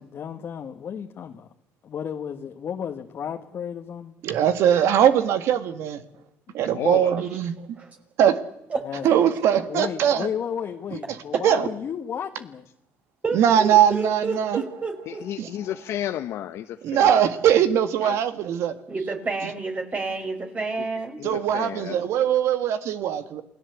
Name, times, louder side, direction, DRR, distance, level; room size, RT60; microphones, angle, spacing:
voice 1, 0.0-1.5 1.8-4.2 6.5-6.6 8.8-9.1 9.7-12.7, left 8 dB, 50° left, 1.7 m, -33 dB
voice 2, 4.2-6.0 6.5-7.5 8.2-8.4 9.0-10.3 11.4-11.7 13.3-14.6 15.4-15.5 16.8-18.7 21.2-23.4, right 9 dB, 70° right, 1.9 m, -21 dB
voice 3, 6.7-7.3 15.1-17.2 18.0-18.2 21.2-22.0, left 12 dB, 70° left, 1.1 m, -32 dB
voice 4, 13.2-15.2 18.9-21.2, right 3 dB, 30° right, 5.5 m, -30 dB
28.0 x 17.5 x 8.3 m
supercardioid pair, 85°, 5 cm